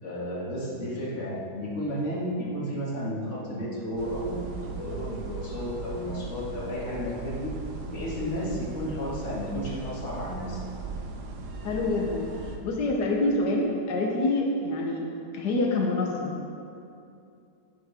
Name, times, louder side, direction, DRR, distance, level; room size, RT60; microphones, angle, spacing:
voice 1, 0.0-7.6 7.9-10.6, equal, 45° left, -6 dB, 2.3 m, -33 dB
sound 1, 4.0-12.6, right 4 dB, 80° right, 1.5 m, -38 dB
voice 2, 11.6-12.3 12.6-15.1 15.3-16.4, left 2 dB, 85° left, -1 dB, 1.5 m, -26 dB
10.5 x 9.4 x 3.6 m, 2.6 s
omnidirectional pair, 1.7 m